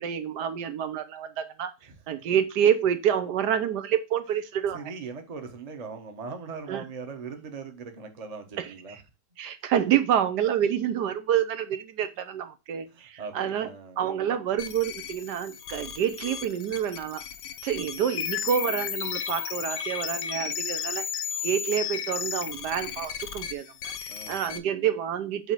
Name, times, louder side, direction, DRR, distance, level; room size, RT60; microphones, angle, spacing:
voice 1, 0.0-1.7 2.1-4.8 6.7-6.8 8.6-8.7 9.4-13.7 14.0-17.2 17.6-21.1 21.4-25.5, right 9 dB, 75° right, 10 dB, 1.2 m, -28 dB
voice 2, 4.7-9.0 12.9-14.0 24.1-24.5, right 5 dB, 30° right, 5 dB, 0.9 m, -40 dB
sound 1, 14.6-24.6, left 9 dB, 80° left, 1.3 m, -34 dB
8.0 x 2.8 x 4.5 m, 0.27 s
omnidirectional pair, 1.8 m